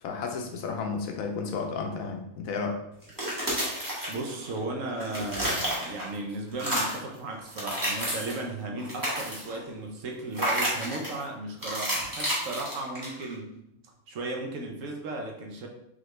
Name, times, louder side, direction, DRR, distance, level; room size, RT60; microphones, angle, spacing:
voice 1, 0.0-2.8, left 4 dB, 75° left, 4 dB, 1.0 m, -32 dB
sound 1, 3.0-4.6 4.9-6.2 6.5-7.1 7.5-8.4 8.8-9.6 10.3-11.2 11.6-13.3, equal, 15° right, 1.1 m, -30 dB
voice 2, 4.1-13.6 14.1-15.7, right 2 dB, 70° right, 2 dB, 1.0 m, -35 dB
3.9 x 3.2 x 3.2 m, 0.78 s
omnidirectional pair, 1.5 m